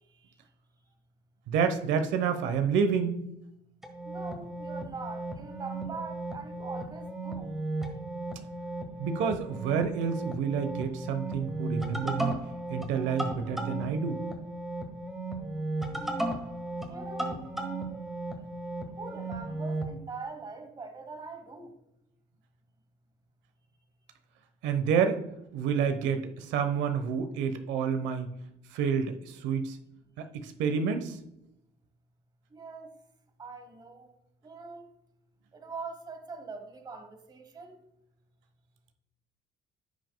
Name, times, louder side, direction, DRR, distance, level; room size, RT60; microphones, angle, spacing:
voice 1, 1.5-3.2 9.0-12.4 12.7-14.2 24.6-25.2 25.5-28.3 28.7-29.8 30.2-31.2, right 6 dB, 85° right, 1.1 m, -29 dB
sound 1, 3.8-19.9, right 2 dB, ahead, 1.6 m, -35 dB
voice 2, 4.0-7.5 16.9-17.4 19.0-21.7 32.5-32.9 33.4-34.1 34.4-34.8 35.5-37.8, right 4 dB, 20° right, 1.2 m, -42 dB
15.5 x 6.3 x 2.3 m
cardioid pair, 155°, 18 cm